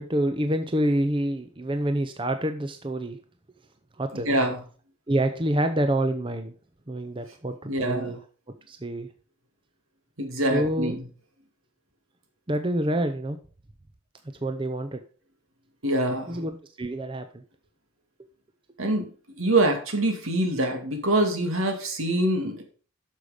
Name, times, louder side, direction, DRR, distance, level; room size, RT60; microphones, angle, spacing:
voice 1, 0.0-3.2 4.0-4.3 5.1-6.5 6.9-8.2 8.7-9.1 10.5-11.0 12.5-13.4 14.4-15.0 16.3-17.4, right 1 dB, 25° right, 7 dB, 0.7 m, -27 dB
voice 2, 4.1-4.6 7.7-8.1 10.2-11.0 15.8-16.4 18.8-19.1 19.4-22.6, right 1 dB, 80° right, 4 dB, 2.3 m, -25 dB
9.2 x 6.6 x 5.0 m, 0.40 s
head